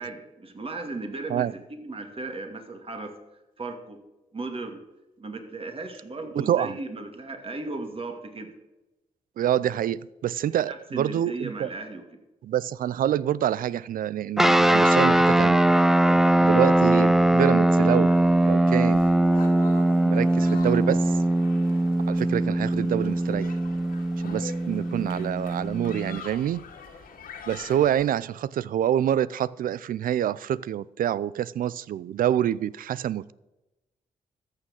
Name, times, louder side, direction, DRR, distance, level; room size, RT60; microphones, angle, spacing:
voice 1, 0.0-3.2 3.6-4.0 4.3-4.8 5.2-8.5 10.7-12.0 16.1-16.2, right 3 dB, 40° right, 2.3 m, -36 dB
voice 2, 6.4-6.8 9.4-11.7 12.4-15.6 16.4-18.1 18.4-19.1 20.0-21.2 22.1-23.6 24.2-26.6 27.5-33.3, right 10 dB, 75° right, 0.5 m, -26 dB
sound 1, 14.4-26.2, right 1 dB, ahead, 0.6 m, -21 dB
sound 2, 18.0-28.1, left 5 dB, 85° left, 2.3 m, -45 dB
13.5 x 6.5 x 7.2 m
cardioid pair, 65°, 15 cm